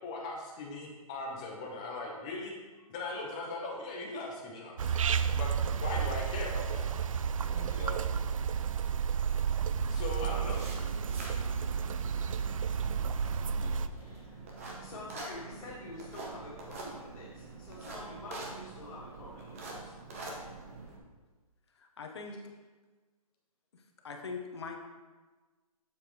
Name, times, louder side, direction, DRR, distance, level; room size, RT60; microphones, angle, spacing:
voice 1, 0.0-2.5 2.9-4.9 5.3-6.9 7.7-8.0 9.9-10.7, left 2 dB, 10° left, 0 dB, 0.5 m, -39 dB
sound 1, 4.8-13.9, right 7 dB, 60° right, 0.4 m, -31 dB
voice 2, 7.4-7.9 13.6-14.4 14.8-19.9, left 1 dB, 65° left, -7 dB, 2.0 m, -47 dB
sound 2, 10.1-21.0, right 3 dB, 25° right, 0.9 m, -45 dB
voice 3, 21.8-22.4 23.7-24.8, left 4 dB, 45° left, 3 dB, 1.0 m, -42 dB
8.4 x 7.1 x 3.1 m, 1.3 s
hypercardioid pair, 170°, 19 cm